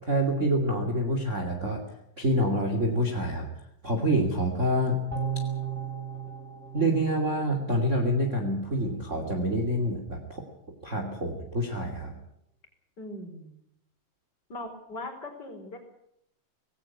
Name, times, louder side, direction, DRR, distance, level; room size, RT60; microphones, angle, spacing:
voice 1, 0.0-1.8 2.2-3.5 3.8-5.0 6.7-10.4 10.8-12.1, right 1 dB, 25° right, 4 dB, 2.5 m, -27 dB
sound 1, 5.1-8.4 8.8-8.9, right 7 dB, 5° right, 5.0 m, -36 dB
voice 2, 13.0-13.6 14.5-15.8, left 1 dB, 30° left, 4 dB, 4.9 m, -40 dB
19.0 x 17.0 x 9.6 m, 0.76 s
omnidirectional pair, 3.9 m